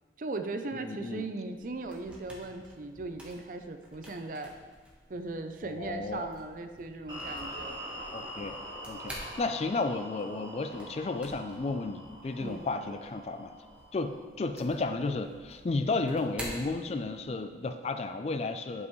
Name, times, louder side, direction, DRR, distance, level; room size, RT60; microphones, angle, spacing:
voice 1, 0.2-4.5 5.1-7.8 12.4-12.6, right 3 dB, 50° right, 7 dB, 0.5 m, -38 dB
voice 2, 0.9-1.3 5.6-6.3 8.1-8.6 8.9-13.5 13.9-18.9, left 3 dB, 35° left, 9 dB, 0.3 m, -33 dB
sound 1, 1.5-17.4, equal, 5° right, 1.1 m, -50 dB
sound 2, 7.1-14.3, equal, 25° right, 2.0 m, -44 dB
10.5 x 5.4 x 3.1 m, 1.5 s
head